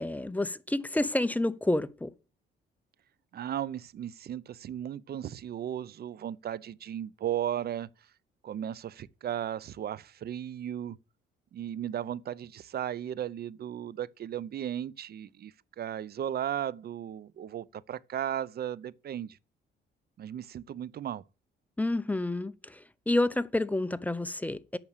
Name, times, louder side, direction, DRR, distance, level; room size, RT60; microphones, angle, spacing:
voice 1, 0.0-2.1 21.8-22.5 23.1-24.8, left 2 dB, 10° left, 0.6 m, -29 dB
voice 2, 3.3-7.9 8.4-11.0 11.5-19.4 20.2-21.2, right 10 dB, 55° right, 0.6 m, -35 dB
8.8 x 6.0 x 6.6 m
cardioid pair, 90°, 20 cm